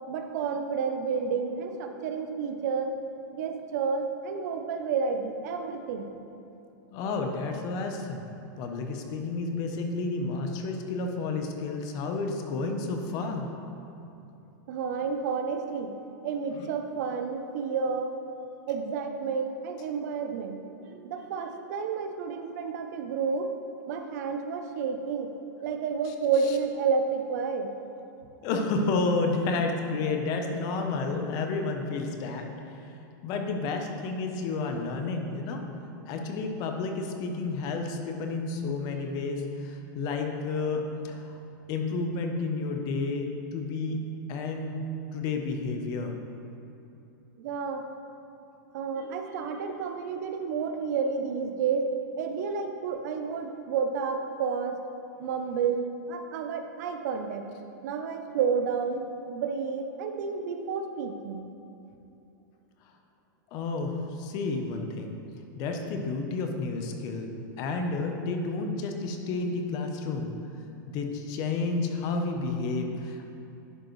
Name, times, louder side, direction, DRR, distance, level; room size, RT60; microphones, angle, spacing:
voice 1, 0.1-3.0 3.3-6.1 14.7-15.9 16.2-18.1 18.7-23.5 23.9-25.3 25.6-27.7 38.9-39.1 47.4-47.8 48.7-51.9 52.2-54.8 55.2-57.4 57.8-61.5, right 5 dB, 60° right, 6 dB, 0.6 m, -30 dB
voice 2, 6.9-8.2 8.6-13.5 16.5-16.7 26.0-26.1 28.4-32.5 33.2-35.6 36.1-41.3 41.7-44.0 44.3-44.9 45.1-46.2 63.5-65.2 65.6-70.3 70.9-73.3, left 3 dB, 35° left, 4 dB, 0.7 m, -31 dB
11.0 x 5.2 x 3.1 m, 2.8 s
supercardioid pair, 150°, 10 cm